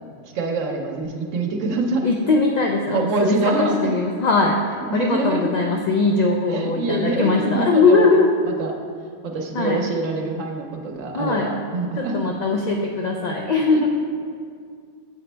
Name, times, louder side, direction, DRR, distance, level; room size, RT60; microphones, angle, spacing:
voice 1, 0.3-2.1 2.9-3.9 4.9-5.5 6.5-8.2 8.6-8.7 9.2-12.2 13.7-13.9, right 3 dB, 85° right, 2 dB, 1.1 m, -25 dB
voice 2, 2.0-4.6 4.9-8.3 9.5-9.8 11.1-11.5 12.0-13.9, left 3 dB, 60° left, 1 dB, 0.4 m, -20 dB
8.3 x 5.0 x 3.3 m, 2.2 s
omnidirectional pair, 1.3 m